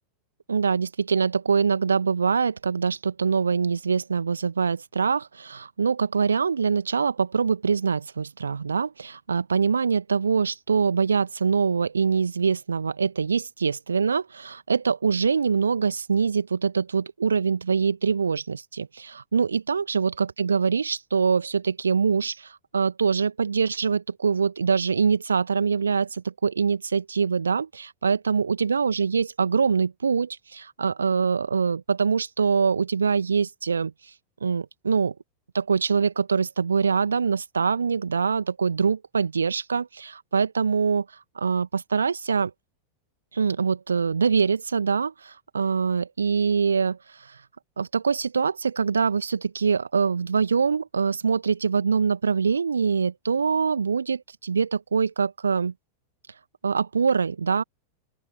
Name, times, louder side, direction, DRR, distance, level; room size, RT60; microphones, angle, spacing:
voice 1, 0.5-33.9 34.4-35.1 35.5-41.0 41.3-42.5 43.3-47.4 47.8-55.7 56.6-57.6, right 5 dB, 75° right, 1.8 m, -24 dB
open air
figure-of-eight pair, 90°, 0 cm